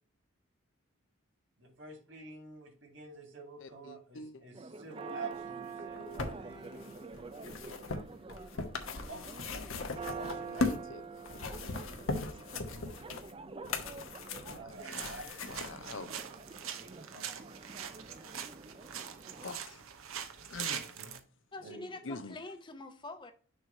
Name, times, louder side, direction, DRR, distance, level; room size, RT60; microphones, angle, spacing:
voice 1, 1.6-6.9 9.1-9.5 10.1-10.7 14.5-16.4 16.7-17.5 20.7-21.1 21.6-22.0, right 3 dB, 65° right, 2.2 m, -48 dB
voice 2, 3.6-4.4 10.6-11.0 12.3-12.9 14.4-16.1 19.4-19.8 20.5-20.9 22.0-22.4, left 3 dB, 65° left, 0.6 m, -46 dB
Church bell, 4.5-19.5, right 4 dB, 25° right, 0.4 m, -47 dB
sound 1, 5.7-10.9 11.2-15.7 16.5-16.6, left 3 dB, 85° left, 1.0 m, -38 dB
sound 2, 14.7-21.2, right 8 dB, 90° right, 0.8 m, -43 dB
voice 3, 21.5-23.3, left 2 dB, 25° left, 0.8 m, -45 dB
6.6 x 3.1 x 5.7 m
head